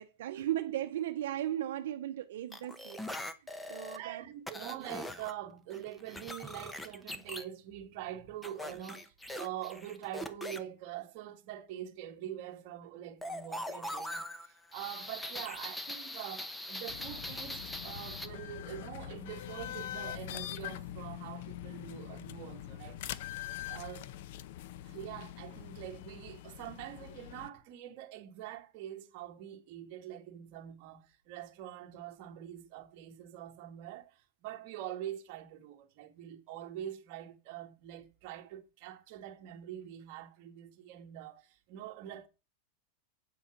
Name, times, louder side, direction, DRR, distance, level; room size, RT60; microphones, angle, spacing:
voice 1, 0.0-3.0 3.4-4.3 4.6-4.9, right 12 dB, 75° right, 0.7 m, -37 dB
sound 1, 2.5-4.0 4.5-5.3 5.7-7.4 8.4-10.6 13.2-18.3, left 1 dB, 5° left, 0.8 m, -41 dB
voice 2, 3.9-23.0 23.7-24.1 24.8-42.3, right 12 dB, 45° right, 1.5 m, -44 dB
sound 2, 16.9-27.5, left 12 dB, 60° left, 0.6 m, -43 dB
8.6 x 7.0 x 5.9 m
supercardioid pair, 150°, 0 cm